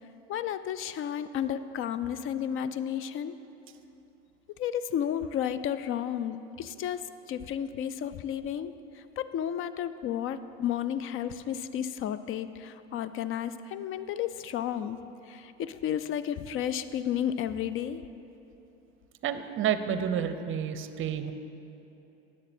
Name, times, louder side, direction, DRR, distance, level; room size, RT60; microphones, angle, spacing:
voice 1, 0.3-3.4 4.6-7.0 7.3-15.0 15.3-18.0, left 9 dB, 40° left, 13 dB, 0.4 m, -32 dB
voice 2, 19.2-21.3, right 8 dB, 40° right, 11 dB, 0.6 m, -30 dB
10.5 x 7.5 x 4.3 m, 3.0 s
hypercardioid pair, 80°, 32 cm